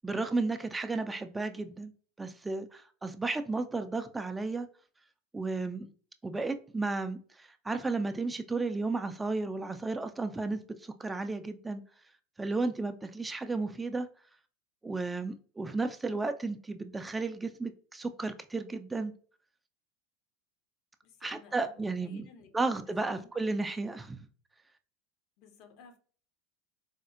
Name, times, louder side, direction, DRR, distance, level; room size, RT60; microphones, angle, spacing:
voice 1, 0.0-1.9 2.2-4.7 5.3-5.9 6.2-11.8 12.4-14.1 14.8-19.1 21.2-22.3 22.5-24.2, right 3 dB, 15° right, 0.3 m, -33 dB
voice 2, 21.0-22.5 23.0-23.3 25.4-26.0, left 6 dB, 60° left, 0.6 m, -56 dB
4.2 x 2.0 x 2.5 m
hypercardioid pair, 80°, 0 cm